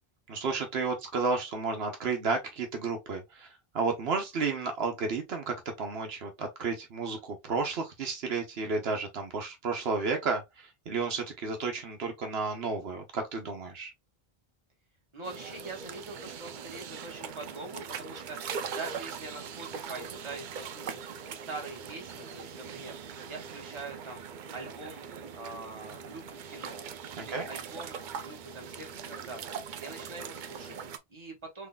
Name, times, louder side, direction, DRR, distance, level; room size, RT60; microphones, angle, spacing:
voice 1, 0.3-13.9 27.2-27.5, right 4 dB, 80° right, 1.1 m, -32 dB
voice 2, 15.1-25.0 25.3-31.7, right 3 dB, 30° right, 1.4 m, -44 dB
sound 1, 15.2-31.0, right 6 dB, 60° right, 0.6 m, -41 dB
3.8 x 3.2 x 2.2 m
omnidirectional pair, 1.0 m